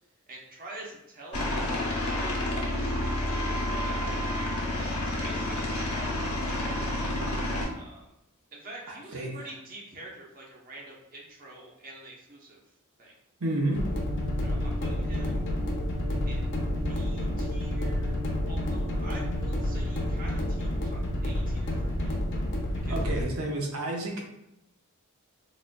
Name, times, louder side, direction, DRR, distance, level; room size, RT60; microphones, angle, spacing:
voice 1, 0.3-2.9 3.8-6.9 7.8-8.1 8.5-12.6 13.0-13.1 14.4-15.5 16.2-16.6 16.8-22.2 22.7-23.2, right 2 dB, 40° right, -3 dB, 0.8 m, -47 dB
Aircraft, 1.3-7.6, left 1 dB, 90° left, 0.9 m, -29 dB
voice 2, 13.4-13.8 22.9-24.2, right 1 dB, 80° right, 0 dB, 0.8 m, -30 dB
sound 1, 13.7-23.2, left 1 dB, 55° left, 0.6 m, -29 dB
4.0 x 2.4 x 2.2 m, 0.84 s
head